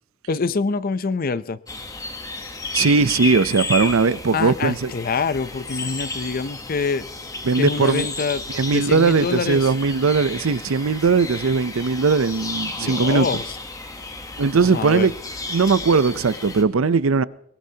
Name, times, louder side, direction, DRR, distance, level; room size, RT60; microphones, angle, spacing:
voice 1, 0.3-1.6 4.3-7.1 7.6-8.4 8.7-9.7 12.8-13.4 14.7-15.1, left 4 dB, 45° left, 0.5 m, -25 dB
sound 1, 1.7-16.6, left 2 dB, 15° left, 1.0 m, -32 dB
voice 2, 2.7-4.9 7.4-8.1 8.5-13.3 14.4-15.1 15.5-17.2, right 4 dB, 75° right, 0.6 m, -19 dB
22.0 x 18.5 x 2.8 m
head